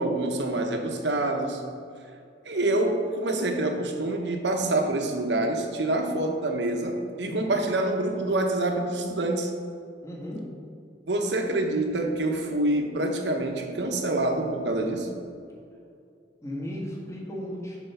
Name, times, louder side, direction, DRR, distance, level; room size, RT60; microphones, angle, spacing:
voice 1, 0.0-1.6 2.4-9.5 11.1-15.1, right 2 dB, 70° right, 3 dB, 1.1 m, -26 dB
voice 2, 7.2-7.6 10.0-10.6 16.4-17.8, equal, 15° left, -4 dB, 1.7 m, -36 dB
10.5 x 4.7 x 5.6 m, 2.4 s
head